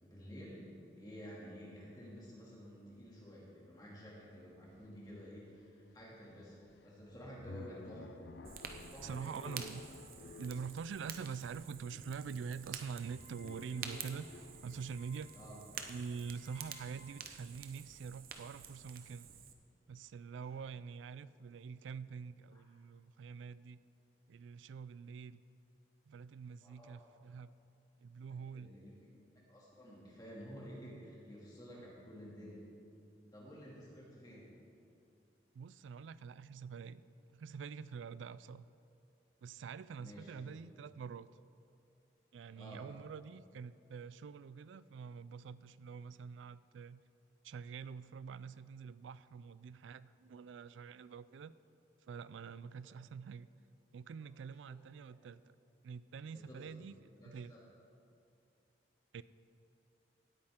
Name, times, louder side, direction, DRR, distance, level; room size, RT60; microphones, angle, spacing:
voice 1, 0.0-6.6 6.8-8.1 8.9-9.6 15.3-15.6 20.5-20.7 22.5-22.6 26.6-27.0 28.5-29.2 29.5-32.6 33.3-34.6 40.0-40.6 42.5-42.9 52.8-52.9 54.7-54.8 55.1-55.2 56.3-56.8 57.2-57.6, equal, 20° left, -5 dB, 2.4 m, -52 dB
sound 1, 4.3-4.4 4.7-17.4, left 3 dB, 70° left, 0.5 m, -55 dB
Fire, 8.4-19.5, right 7 dB, 50° right, 0.7 m, -50 dB
voice 2, 9.0-9.9 10.4-15.3 15.9-19.3 19.9-23.8 24.3-25.4 26.1-27.6 28.0-28.7 31.7-31.9 35.5-37.0 37.3-38.7 39.4-41.3 42.3-47.0 47.4-51.5 52.1-53.5 53.9-55.5 55.8-56.9 57.2-57.5 59.1-59.2, right 6 dB, 90° right, 16 dB, 0.3 m, -46 dB
17.5 x 8.6 x 3.7 m, 2.5 s
head